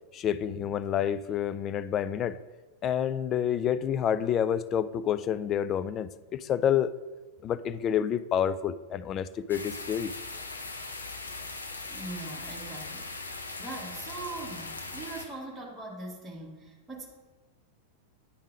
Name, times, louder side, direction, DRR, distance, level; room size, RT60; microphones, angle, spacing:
voice 1, 0.1-2.4 2.8-6.9 7.4-10.1, left 9 dB, 30° left, 13 dB, 0.3 m, -28 dB
sound 1, 9.5-15.3, left 3 dB, 75° left, 0.7 m, -40 dB
voice 2, 11.9-17.1, right 2 dB, 10° right, -3 dB, 1.3 m, -41 dB
9.9 x 3.6 x 4.9 m, 1.3 s
figure-of-eight pair, 90°, 0 cm